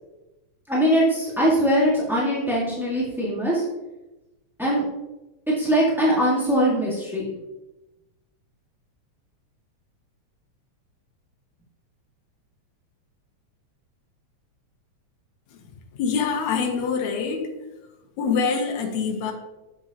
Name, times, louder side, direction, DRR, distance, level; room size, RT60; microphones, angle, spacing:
voice 1, 0.7-3.6 4.6-4.8 5.5-7.2, equal, ahead, -7 dB, 0.4 m, -21 dB
voice 2, 16.0-17.5 18.2-19.3, left 5 dB, 75° left, 3 dB, 2.3 m, -24 dB
7.9 x 7.6 x 2.8 m, 1.0 s
omnidirectional pair, 3.4 m